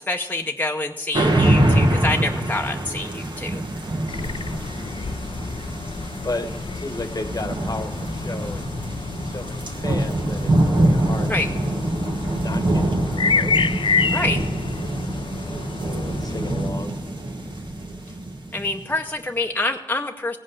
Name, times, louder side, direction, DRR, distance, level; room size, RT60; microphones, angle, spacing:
voice 1, 0.1-3.6 11.3-11.5 14.1-14.4 18.5-20.4, left 2 dB, 20° left, 3 dB, 0.7 m, -26 dB
sound 1, 1.1-19.0, right 1 dB, 70° right, 1.8 m, -24 dB
sound 2, 4.1-16.7, left 5 dB, 75° left, 0.5 m, -29 dB
voice 2, 4.8-5.2 6.2-8.7 9.2-11.8 12.4-13.6 15.8-17.0, left 2 dB, 45° left, 9 dB, 1.1 m, -34 dB
16.0 x 5.5 x 8.3 m, 1.2 s
wide cardioid pair, 50°, 9 cm